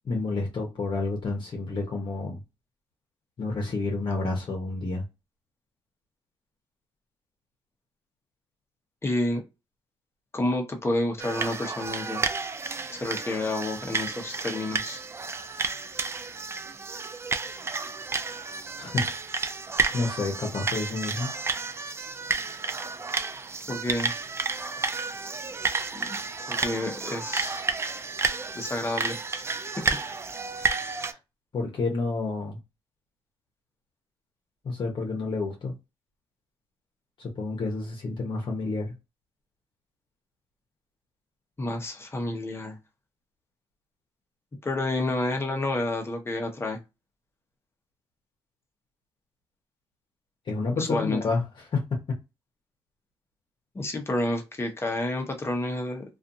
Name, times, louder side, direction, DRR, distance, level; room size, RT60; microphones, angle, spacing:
voice 1, 0.0-2.4 3.4-5.0 18.8-19.2 19.9-21.3 30.9-31.2 31.5-32.6 34.6-35.7 37.2-38.9 50.5-51.4 51.7-51.8, left 3 dB, 50° left, 0.9 m, -29 dB
voice 2, 9.0-9.4 10.3-12.2 12.9-15.0 23.7-24.1 25.9-26.2 26.5-27.6 28.5-29.4 30.6-30.7 41.6-42.8 44.6-46.8 50.8-51.2 53.7-56.0, left 2 dB, 25° left, 0.9 m, -29 dB
sound 1, 11.2-31.1, right 4 dB, 25° right, 0.3 m, -31 dB
2.5 x 2.4 x 2.5 m
cardioid pair, 105°, 10 cm